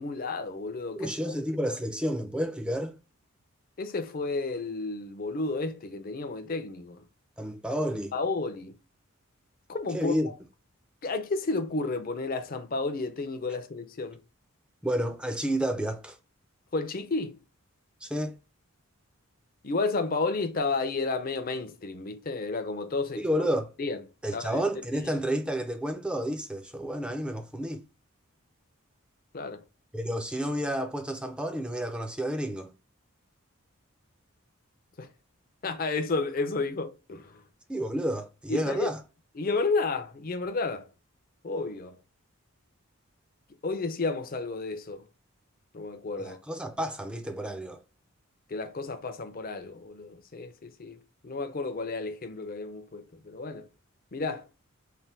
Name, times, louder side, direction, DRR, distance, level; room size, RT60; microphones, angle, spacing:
voice 1, 0.0-1.3 3.8-7.0 8.1-8.8 9.7-10.1 11.0-14.2 16.7-17.4 19.6-23.3 23.8-24.0 24.3-24.6 24.9-25.1 29.3-29.6 35.0-35.1 35.6-37.4 38.5-38.9 39.4-40.9 41.4-42.0 43.6-45.1 45.7-46.4 48.5-53.7 54.1-54.5, left 3 dB, 40° left, 0.5 m, -32 dB
voice 2, 0.9-3.0 7.4-8.1 9.9-10.3 14.8-16.2 18.0-18.4 23.2-23.7 24.2-27.8 29.9-32.7 37.7-39.0 46.2-47.8, equal, 5° right, 0.5 m, -30 dB
3.3 x 2.2 x 4.2 m
head